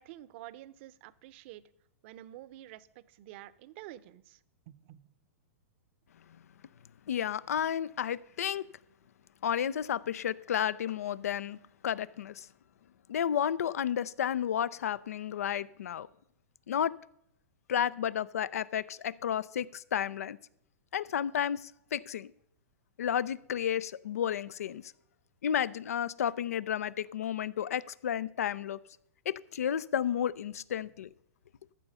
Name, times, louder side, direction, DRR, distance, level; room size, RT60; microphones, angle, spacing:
voice 1, 0.0-1.6 2.0-4.4 4.7-5.1, right 14 dB, 50° right, 17 dB, 0.7 m, -49 dB
voice 2, 7.1-8.7 9.4-11.6 11.8-12.5 13.1-16.1 16.7-16.9 17.7-20.4 20.9-22.3 23.0-24.9 25.4-28.8 29.3-31.1, left 9 dB, 80° left, 20 dB, 0.5 m, -32 dB
13.5 x 6.9 x 5.4 m, 0.74 s
hypercardioid pair, 125°, 8 cm